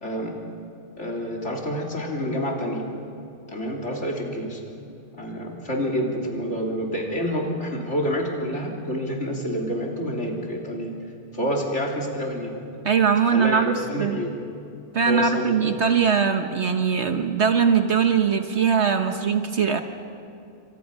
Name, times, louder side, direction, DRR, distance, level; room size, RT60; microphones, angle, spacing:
voice 1, 0.0-0.3 1.0-2.8 3.5-4.6 5.1-10.9 11.3-12.5 13.3-14.3 15.1-15.6, equal, 50° left, -1 dB, 3.6 m, -28 dB
voice 2, 12.8-14.2 14.9-19.8, right 6 dB, 55° right, 6 dB, 1.2 m, -21 dB
28.0 x 24.5 x 5.5 m, 2.5 s
omnidirectional pair, 1.5 m